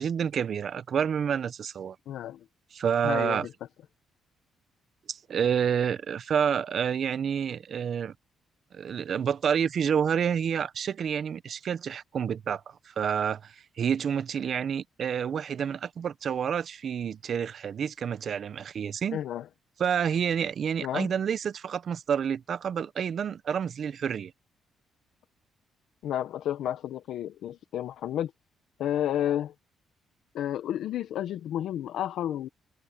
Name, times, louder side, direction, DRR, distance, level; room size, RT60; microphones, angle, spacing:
voice 1, 0.0-2.0 2.7-3.5 5.1-8.1 8.7-19.2 19.8-24.3, right 7 dB, 55° right, 1.0 m, -29 dB
voice 2, 2.1-2.4 3.0-3.5 19.1-19.5 20.8-21.1 26.0-28.3 28.8-29.5 30.3-32.5, left 11 dB, 80° left, 0.9 m, -31 dB
cardioid pair, 90°, 0 cm